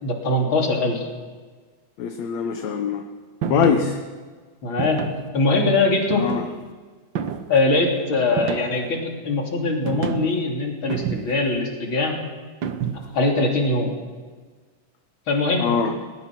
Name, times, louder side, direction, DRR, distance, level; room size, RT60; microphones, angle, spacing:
voice 1, 0.0-1.1 3.5-3.7 4.6-5.0 5.3-6.3 7.5-12.2 13.1-14.0 15.3-15.7, left 2 dB, 40° left, 0 dB, 3.6 m, -22 dB
voice 2, 2.0-3.0 3.5-4.0 6.2-6.4 15.6-15.9, left 7 dB, 65° left, 5 dB, 2.1 m, -22 dB
sound 1, 3.4-3.8 4.8-5.3 6.1-6.7 7.2-7.6 8.4-8.9 9.9-10.4 10.9-11.5 12.6-13.2, right 7 dB, 80° right, 1.0 m, -30 dB
20.5 x 20.5 x 6.1 m, 1.5 s
omnidirectional pair, 3.8 m